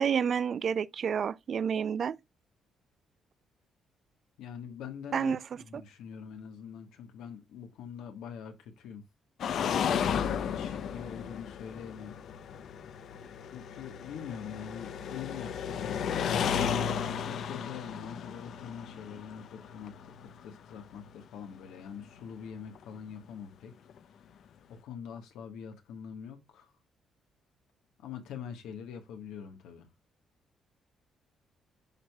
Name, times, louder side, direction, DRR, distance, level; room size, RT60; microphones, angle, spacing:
voice 1, 0.0-2.2 5.1-5.4, right 7 dB, 55° right, 0.4 m, -29 dB
voice 2, 4.4-5.3 5.6-9.0 10.4-12.2 13.4-16.6 17.2-23.7 24.7-26.7 28.0-29.9, left 7 dB, 90° left, 1.4 m, -44 dB
sound 1, 9.4-21.1 22.7-22.8 23.9-24.0, left 8 dB, 70° left, 0.6 m, -34 dB
10.5 x 4.6 x 2.2 m
cardioid pair, 90°, 0 cm